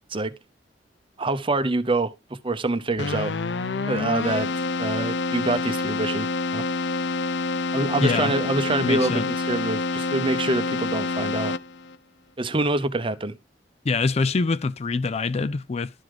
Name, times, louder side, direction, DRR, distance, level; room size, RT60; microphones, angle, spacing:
voice 1, 1.2-3.4 3.9-4.5 4.8-6.6 7.7-11.6 12.4-13.3, right 2 dB, 30° right, 0.8 m, -26 dB
Keyboard (musical), 3.0-12.0, left 3 dB, 85° left, 0.6 m, -27 dB
voice 2, 8.0-8.3 8.8-9.3 13.8-15.9, left 4 dB, 35° left, 0.4 m, -24 dB
12.0 x 4.9 x 3.8 m
head